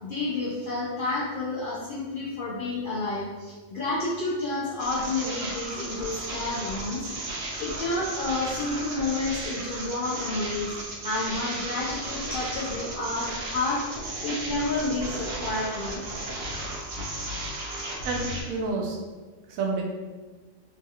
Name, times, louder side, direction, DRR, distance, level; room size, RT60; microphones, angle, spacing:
voice 1, 0.0-10.7 11.0-13.8 14.2-16.0, left 2 dB, 70° left, -7 dB, 0.5 m, -30 dB
sound 1, 4.8-18.4, right 1 dB, 60° right, 0.7 m, -35 dB
voice 2, 18.0-19.0 19.5-19.8, right 3 dB, 85° right, 0 dB, 1.0 m, -29 dB
3.1 x 2.7 x 2.3 m, 1.3 s
omnidirectional pair, 1.4 m